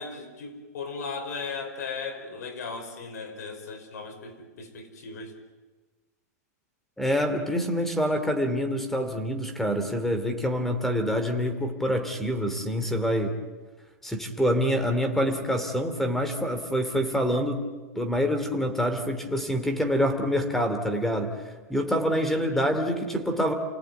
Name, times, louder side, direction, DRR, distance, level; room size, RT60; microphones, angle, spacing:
voice 1, 0.0-5.3 22.3-22.6, left 4 dB, 75° left, 6 dB, 5.2 m, -37 dB
voice 2, 7.0-13.3 14.0-17.6 17.9-21.4 21.7-23.5, equal, 5° left, 8 dB, 2.7 m, -26 dB
29.0 x 18.5 x 9.3 m, 1.3 s
hypercardioid pair, 150°, 9 cm